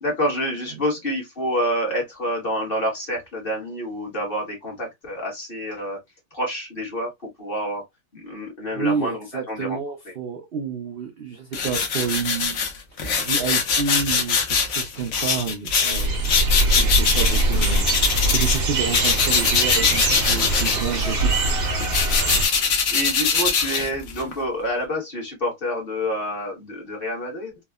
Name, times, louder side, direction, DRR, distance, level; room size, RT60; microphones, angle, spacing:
voice 1, 0.0-6.0 6.3-7.8 8.1-9.8 10.0-10.1 22.9-27.5, equal, 40° left, 1.2 m, -28 dB
voice 2, 8.8-12.6 13.2-14.4 14.6-16.3 16.7-21.3, right 6 dB, 80° right, 0.5 m, -29 dB
sound 1, 11.5-18.6 18.9-24.3, left 5 dB, 60° left, 0.9 m, -22 dB
sound 2, 15.9-22.5, right 2 dB, 50° right, 0.8 m, -22 dB
3.4 x 2.1 x 2.2 m
omnidirectional pair, 1.7 m